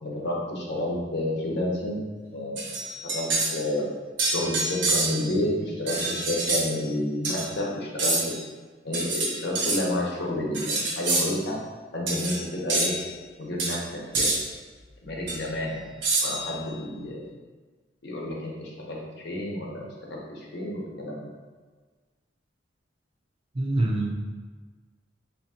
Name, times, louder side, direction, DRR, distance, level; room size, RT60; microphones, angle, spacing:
voice 1, 0.0-2.0 2.3-3.9 4.3-8.2 8.8-11.6 11.9-12.9 13.4-14.3 15.0-15.8 16.2-17.3 18.0-21.3, left 1 dB, 65° left, -2 dB, 0.9 m, -30 dB
sound 1, 2.6-3.6 4.2-5.3 5.9-6.6 7.2-7.5 8.0-8.4 8.9-9.8 10.5-11.3 12.1-12.4 12.7-12.9 13.6-13.8 14.1-14.4 15.3-15.4 16.0-16.5, right 2 dB, 75° right, 1.1 m, -26 dB
voice 2, 23.5-24.1, right 2 dB, 30° right, 0 dB, 0.6 m, -25 dB
3.5 x 2.9 x 4.2 m, 1.4 s
head